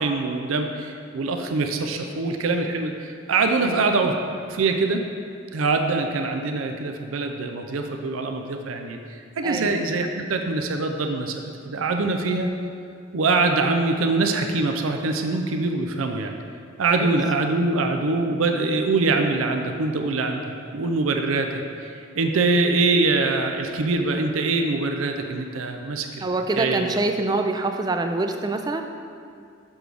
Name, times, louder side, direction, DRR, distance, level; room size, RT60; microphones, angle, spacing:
voice 1, 0.0-4.1 4.5-5.0 5.5-12.5 13.1-16.3 16.8-26.3 26.6-26.9, right 3 dB, 85° right, 5 dB, 0.5 m, -24 dB
voice 2, 9.4-9.8 12.1-12.3 16.9-17.1 26.2-28.8, right 2 dB, 20° right, 6 dB, 0.3 m, -26 dB
7.1 x 6.1 x 3.4 m, 2.3 s
head